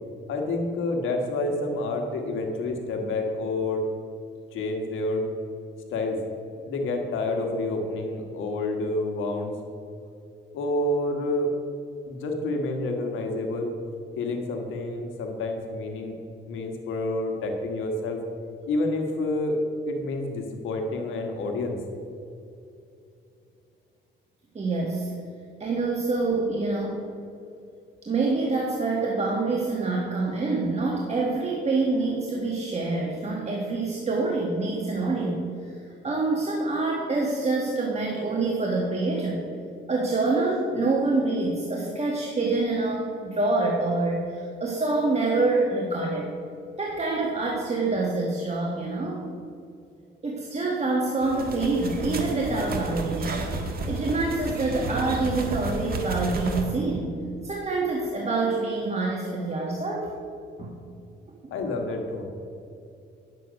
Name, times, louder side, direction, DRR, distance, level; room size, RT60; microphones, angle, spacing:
voice 1, 0.3-3.8 4.5-5.3 5.9-6.2 6.7-9.5 10.5-11.5 12.1-13.7 14.2-16.1 16.5-18.2 18.7-19.6 19.9-21.8 61.5-62.3, left 2 dB, 85° left, 3 dB, 1.6 m, -28 dB
voice 2, 24.5-25.1 25.6-27.1 28.0-39.4 39.9-46.3 46.8-49.2 50.2-53.5 53.9-57.1 57.4-60.1 60.6-60.7 61.4-61.5, right 3 dB, 35° right, -1 dB, 1.4 m, -26 dB
sound 1, 51.2-56.6, right 2 dB, 50° right, 1.5 m, -32 dB
10.0 x 7.6 x 5.2 m, 2.6 s
cardioid pair, 90°, 20 cm